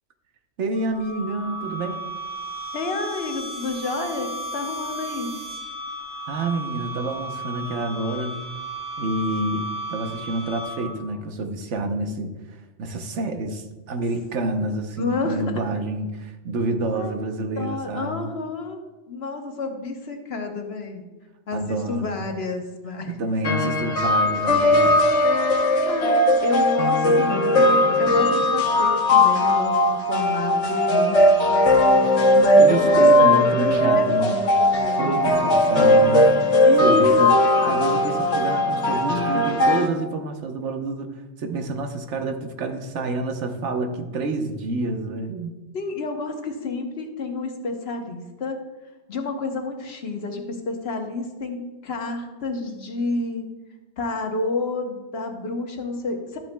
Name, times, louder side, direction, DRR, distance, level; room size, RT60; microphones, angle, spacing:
voice 1, 0.6-2.0 6.3-8.4 9.0-18.3 21.5-22.2 23.1-25.1 32.6-34.4 35.0-37.3 37.6-45.5, right 2 dB, 80° right, 6 dB, 1.1 m, -28 dB
sound 1, 0.7-11.1, right 1 dB, 60° right, 2.3 m, -34 dB
voice 2, 2.7-5.3 15.0-15.4 16.9-17.1 17.6-18.8 19.1-21.1 21.5-23.1 25.4-31.2 32.3-35.1 36.6-37.3 45.7-48.6 49.1-53.5 54.0-56.4, left 3 dB, 60° left, 4 dB, 1.2 m, -30 dB
sound 2, 23.4-39.9, left 1 dB, 85° left, 1.4 m, -18 dB
12.0 x 8.7 x 2.2 m, 1.1 s
omnidirectional pair, 1.2 m